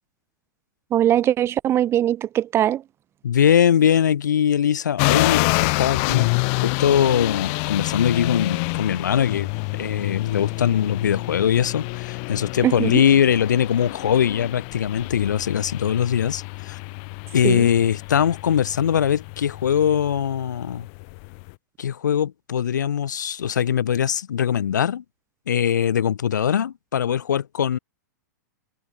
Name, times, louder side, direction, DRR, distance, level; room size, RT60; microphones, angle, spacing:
voice 1, 0.9-2.8 12.6-13.0 17.4-17.7, right 11 dB, 25° right, 0.6 m, -21 dB
voice 2, 3.2-16.8 17.3-20.9 21.8-25.0 25.5-27.8, left 9 dB, 80° left, 0.8 m, -21 dB
sound 1, 5.0-21.5, left 38 dB, 45° left, 1.4 m, -28 dB
hypercardioid pair, 110°, 10 cm